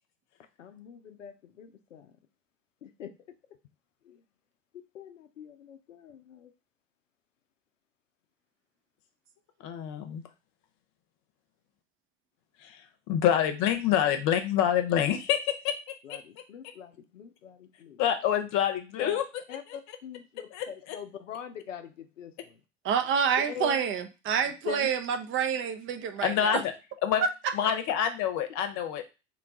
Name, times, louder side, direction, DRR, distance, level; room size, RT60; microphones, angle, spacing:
voice 1, 0.6-2.1 2.8-3.1 4.1-4.2 4.9-6.5 16.0-18.0 19.0-19.2 19.5-22.6 23.4-23.9 24.7-24.9 26.5-26.6, left 8 dB, 90° left, 8 dB, 0.5 m, -42 dB
voice 2, 9.6-10.2 12.6-12.8 13.1-15.8 16.1-16.2 18.0-19.2 19.7-20.0 20.5-21.0 26.2-26.7 27.0-27.2 27.5-29.0, left 9 dB, 50° left, 7 dB, 0.8 m, -27 dB
voice 3, 22.8-26.6 27.2-27.3 27.6-27.7, right 7 dB, 35° right, 8 dB, 0.5 m, -28 dB
3.6 x 2.3 x 3.6 m, 0.29 s
hypercardioid pair, 75°, 36 cm